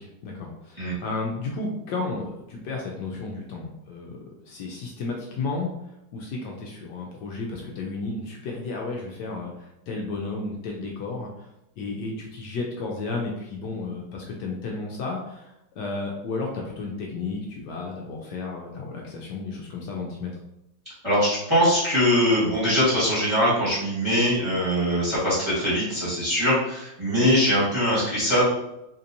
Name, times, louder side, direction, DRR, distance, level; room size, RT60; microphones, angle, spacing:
voice 1, 0.0-4.2 4.5-5.7 6.1-11.5 11.8-20.3, left 3 dB, 75° left, -1 dB, 1.1 m, -33 dB
voice 2, 21.0-28.4, equal, 15° right, -10 dB, 1.3 m, -22 dB
4.2 x 2.8 x 2.6 m, 0.86 s
omnidirectional pair, 2.0 m